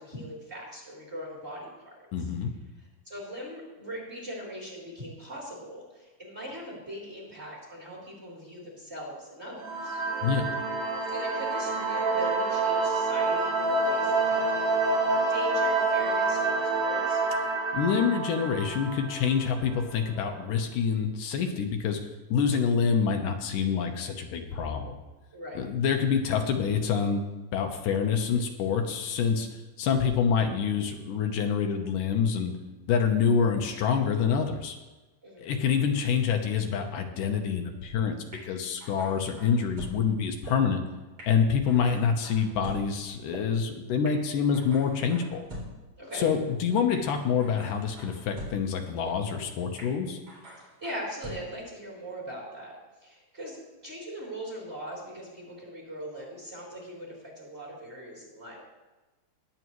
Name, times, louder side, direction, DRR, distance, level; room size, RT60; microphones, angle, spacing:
voice 1, 0.0-2.0 3.1-10.0 11.1-17.2 25.3-25.6 35.2-35.5 46.0-46.3 50.8-52.7 53.0-58.6, equal, 20° right, -4 dB, 3.6 m, -40 dB
voice 2, 2.1-2.5 10.2-10.5 17.7-22.0 22.3-24.9 25.5-27.2 27.5-32.5 32.9-34.8 35.4-38.2 38.4-40.8 41.3-45.4 46.1-50.2, left 6 dB, 85° left, 4 dB, 2.6 m, -26 dB
sound 1, 9.6-20.0, right 3 dB, 80° right, 3.1 m, -27 dB
sound 2, 38.3-38.4 38.8-39.9 40.5-40.6 41.2-41.3 41.7-42.8 43.3-43.4 44.1-44.2 44.5-45.7 46.2-46.3 46.9-47.0 47.4-48.5 49.1-49.2 49.8-49.9 50.3-51.3, right 1 dB, 45° right, 4.6 m, -43 dB
20.5 x 8.4 x 3.1 m, 1.1 s
omnidirectional pair, 3.7 m